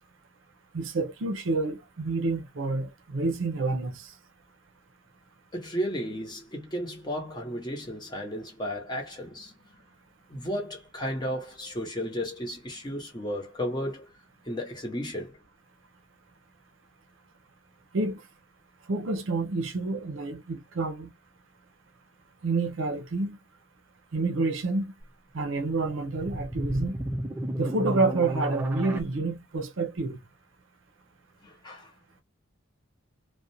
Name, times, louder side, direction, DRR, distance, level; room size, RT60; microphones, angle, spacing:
voice 1, 0.7-4.1 17.9-18.2 18.9-21.1 22.4-23.4 24.1-24.9 25.3-27.0 27.6-30.2, right 3 dB, 70° right, 0.5 m, -28 dB
voice 2, 5.5-9.5 10.3-14.1 14.5-15.4 31.4-31.9, equal, 20° left, 0.8 m, -34 dB
sound 1, 25.8-29.0, equal, 10° right, 0.4 m, -32 dB
2.4 x 2.1 x 2.6 m
head